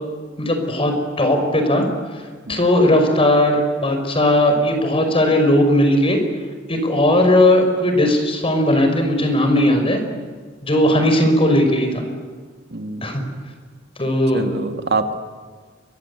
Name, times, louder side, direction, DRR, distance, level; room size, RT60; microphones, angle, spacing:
voice 1, 0.4-1.8 2.5-6.2 6.7-10.0 10.6-12.0 13.0-13.2 14.0-14.5, left 1 dB, 30° left, 5 dB, 5.2 m, -17 dB
voice 2, 12.7-13.0 14.3-15.1, right 3 dB, 55° right, 7 dB, 2.2 m, -24 dB
29.5 x 24.0 x 8.4 m, 1.5 s
head